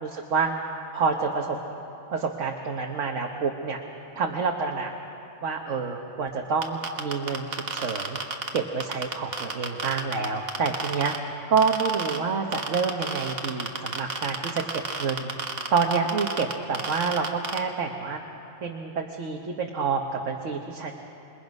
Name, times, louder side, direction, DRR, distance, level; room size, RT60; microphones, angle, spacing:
voice 1, 0.0-0.5 0.9-1.6 2.1-3.8 4.2-4.9 5.4-8.2 8.5-11.1 11.5-15.3 15.7-18.2 18.6-20.9, right 5 dB, 65° right, 2 dB, 1.4 m, -28 dB
sound 1, 6.6-11.2 11.6-12.2 12.5-17.6, right 4 dB, 45° right, 1.5 m, -30 dB
27.5 x 21.0 x 5.3 m, 3.0 s
omnidirectional pair, 1.4 m